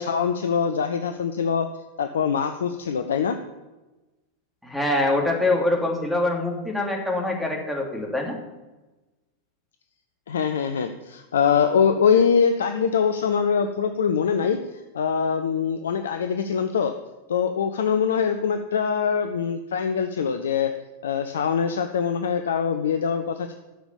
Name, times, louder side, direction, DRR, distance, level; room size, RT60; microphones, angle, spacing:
voice 1, 0.0-1.7 2.0-3.4 10.3-14.6 14.9-16.9 17.3-20.7 21.0-23.6, left 6 dB, 65° left, 8 dB, 0.7 m, -23 dB
voice 2, 4.6-8.4, left 2 dB, ahead, 1 dB, 2.8 m, -24 dB
12.5 x 7.0 x 8.4 m, 1.1 s
figure-of-eight pair, 90°, 0 cm